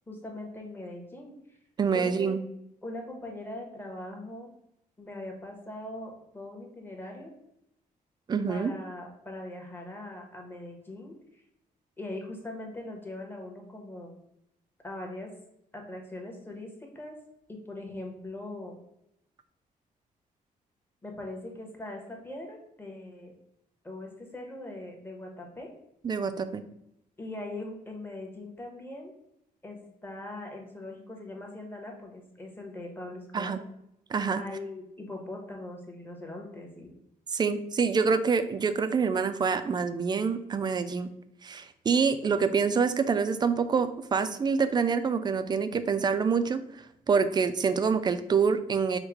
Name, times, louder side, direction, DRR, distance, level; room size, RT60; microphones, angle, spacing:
voice 1, 0.1-1.6 1.9-2.3 2.8-4.5 5.0-7.3 8.5-11.4 12.0-14.1 14.8-15.3 15.7-17.2 17.5-18.8 21.0-23.3 23.8-25.7 27.2-29.1 29.6-33.5 34.4-36.9, left 2 dB, 15° left, 1 dB, 1.0 m, -41 dB
voice 2, 1.8-2.4 8.3-8.7 26.0-26.6 33.3-33.6 34.1-34.4 37.3-41.1 41.4-46.6 47.1-49.0, right 5 dB, 30° right, 11 dB, 0.3 m, -26 dB
4.6 x 2.1 x 4.7 m, 0.80 s
cardioid pair, 120°, 15 cm